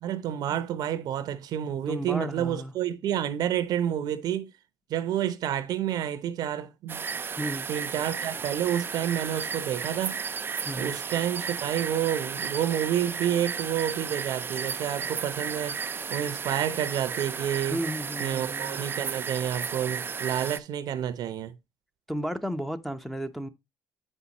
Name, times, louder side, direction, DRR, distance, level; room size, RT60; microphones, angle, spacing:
voice 1, 0.0-4.5 4.9-7.0 7.7-10.2 10.8-15.8 16.1-17.8 18.2-21.5, right 10 dB, 65° right, 0.7 m, -29 dB
voice 2, 1.9-2.7 7.4-7.7 10.6-10.9 17.7-18.9 22.1-23.5, equal, ahead, 0.8 m, -33 dB
sound 1, 6.9-20.6, right 6 dB, 30° right, 0.4 m, -34 dB
8.0 x 5.5 x 2.9 m
supercardioid pair, 80°, 7 cm